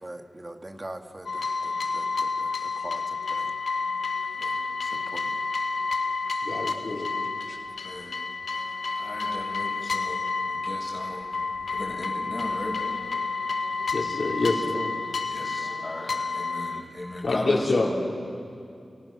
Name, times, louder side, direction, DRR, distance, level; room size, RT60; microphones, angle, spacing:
voice 1, 0.0-3.5 4.8-5.4 14.7-15.0, right 1 dB, 25° right, 5 dB, 2.1 m, -42 dB
sound 1, 1.2-16.8, left 4 dB, 75° left, 1.5 m, -30 dB
voice 2, 6.4-7.1 7.5-7.6 13.9-14.8 17.2-17.9, left 3 dB, 60° left, -2 dB, 4.8 m, -26 dB
voice 3, 7.8-8.2 9.0-10.2 10.5-11.3 11.7-12.8 15.3-18.1, left 1 dB, 35° left, -1 dB, 6.3 m, -36 dB
30.0 x 30.0 x 6.2 m, 2.4 s
wide cardioid pair, 70°, 0 cm